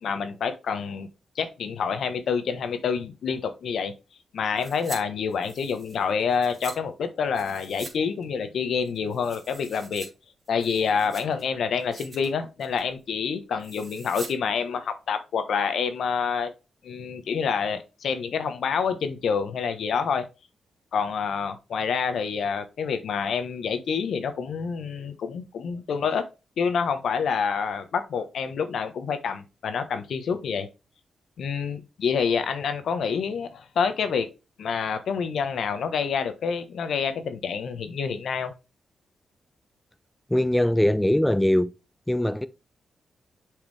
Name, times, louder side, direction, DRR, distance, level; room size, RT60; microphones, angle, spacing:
voice 1, 0.0-1.1 1.4-3.9 4.3-10.1 10.5-16.5 16.8-20.2 20.9-26.2 26.6-30.7 31.4-34.3 34.6-38.5, left 6 dB, 75° left, 1.1 m, -27 dB
sound 1, 4.6-5.0 5.3-6.8 7.3-8.0 8.2-8.3 8.8-10.1 10.5-11.4 11.8-12.3 12.6-12.9 13.6-14.3 14.6-14.7, right 3 dB, 40° right, 2.6 m, -43 dB
voice 2, 40.3-41.7 42.1-42.5, left 1 dB, 5° left, 0.5 m, -21 dB
7.1 x 4.8 x 3.3 m
cardioid pair, 70°, 0 cm